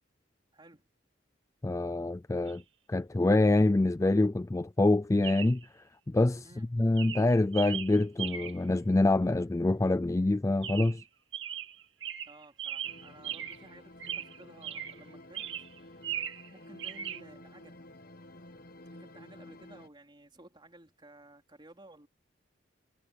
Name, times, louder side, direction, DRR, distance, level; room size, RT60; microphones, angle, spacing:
voice 1, 0.5-0.9 6.4-6.7 12.2-15.7 16.5-17.9 18.9-22.1, right 1 dB, 25° right, 4.0 m, -55 dB
voice 2, 1.6-2.6 2.9-5.6 6.1-6.4 6.7-11.0, left 2 dB, 15° left, 0.4 m, -26 dB
Chirp tweet, 2.5-2.6 5.2-5.6 6.4-6.6 7.0-8.7 10.6-11.1 11.3-13.7 14.0-15.0 15.3-16.5 16.8-17.2, right 10 dB, 70° right, 2.8 m, -39 dB
sound 1, 12.8-19.9, left 1 dB, 50° left, 1.1 m, -52 dB
head